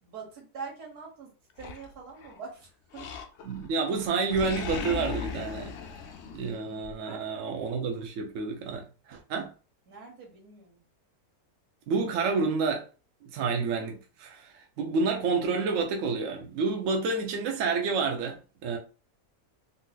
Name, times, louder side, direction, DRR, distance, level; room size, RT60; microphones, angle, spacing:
voice 1, 0.0-3.1 6.5-7.4 9.9-10.8, right 5 dB, 85° right, 1.9 m, -45 dB
Animal, 1.6-2.4 2.9-3.7 4.0-6.9, left 5 dB, 70° left, 0.7 m, -37 dB
voice 2, 3.4-5.7 6.3-9.5 11.9-12.9 13.2-18.8, right 4 dB, 65° right, 0.9 m, -29 dB
3.9 x 2.7 x 2.3 m
omnidirectional pair, 1.6 m